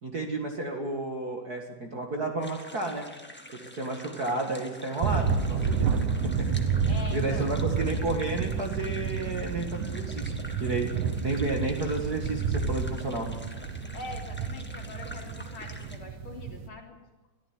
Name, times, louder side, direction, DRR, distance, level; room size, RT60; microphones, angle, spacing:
voice 1, 0.0-3.0 3.8-6.5 7.1-10.3 10.6-10.9 11.2-13.3, right 2 dB, 35° right, 2 dB, 2.1 m, -32 dB
sound 1, 2.4-16.0, left 1 dB, 5° left, 1.2 m, -47 dB
sound 2, 5.0-16.7, right 6 dB, 90° right, 2.7 m, -30 dB
voice 2, 6.9-7.5 13.9-17.0, left 3 dB, 45° left, 2 dB, 3.5 m, -43 dB
sound 3, 9.8-10.1 10.4-10.7 11.0-11.3 11.7-11.9 12.2-12.3 12.7-13.3 13.6-14.6, left 3 dB, 80° left, 4.1 m, -50 dB
23.0 x 14.0 x 9.6 m, 1.1 s
omnidirectional pair, 3.4 m